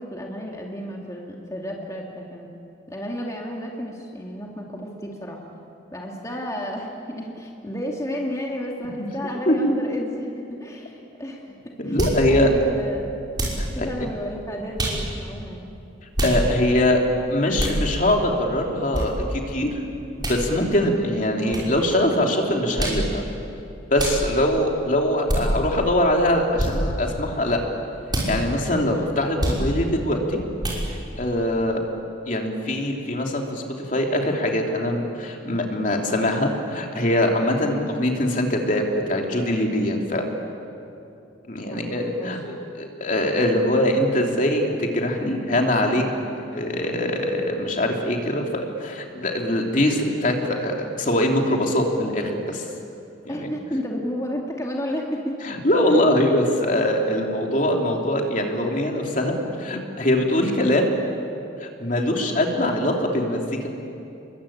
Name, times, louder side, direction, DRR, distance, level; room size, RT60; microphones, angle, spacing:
voice 1, 0.0-2.5 2.9-5.5 5.9-11.5 11.8-12.0 12.3-13.2 13.5-15.7 41.6-42.4 53.3-55.4, equal, 15° left, -1 dB, 2.5 m, -32 dB
voice 2, 11.8-12.5 13.6-13.9 16.2-17.0 17.3-19.8 20.2-23.2 23.9-27.6 28.3-30.4 30.8-31.8 32.3-33.6 33.9-40.3 41.5-46.0 46.5-52.7 53.2-53.5 55.4-60.9 61.6-63.7, left 1 dB, 45° left, 1 dB, 3.2 m, -22 dB
sound 1, 12.0-12.2 13.3-13.6 14.8-15.0 16.1-16.4 17.6-17.8 18.9-19.1 20.2-20.4 21.5-21.7 22.8-23.0 24.0-24.2 25.3-25.4 26.6-26.7 28.1-28.3 29.4-29.6 30.6-30.8, right 1 dB, 25° right, 5.8 m, -25 dB
29.5 x 23.0 x 8.8 m, 2.7 s
head